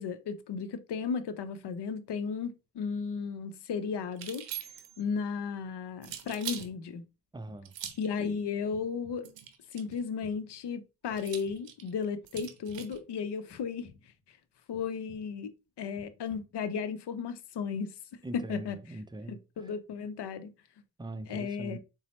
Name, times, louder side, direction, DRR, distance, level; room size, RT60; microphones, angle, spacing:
voice 1, 0.0-4.4 5.0-7.0 8.0-9.3 9.7-13.9 14.7-15.5 15.8-17.9 18.3-18.8 19.3-20.5 21.3-21.8, left 6 dB, 65° left, 0.6 m, -34 dB
sound 1, 4.1-5.0 6.0-6.7 7.6-8.1 9.2-10.0 11.2-13.0, right 10 dB, 85° right, 0.6 m, -42 dB
sound 2, 6.3-7.0 7.5-8.2 8.7-9.5 9.9-10.7 11.1-11.9 12.3-13.1 13.5-14.3 14.7-15.5 15.9-16.8, left 5 dB, 30° left, 1.4 m, -57 dB
voice 2, 7.3-7.7 18.2-19.7 21.0-21.8, right 2 dB, 10° right, 0.4 m, -42 dB
3.9 x 2.0 x 3.0 m
supercardioid pair, 40°, 44 cm